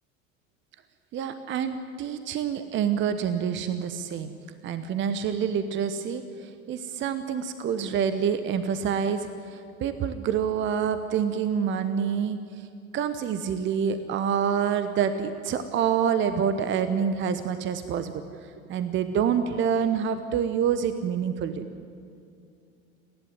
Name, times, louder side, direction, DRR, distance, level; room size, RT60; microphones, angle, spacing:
voice 1, 1.1-4.3 4.6-12.7 12.9-18.2 18.7-21.6, right 7 dB, 30° right, 11 dB, 1.0 m, -27 dB
30.0 x 11.5 x 9.7 m, 2.5 s
figure-of-eight pair, 80°, 42 cm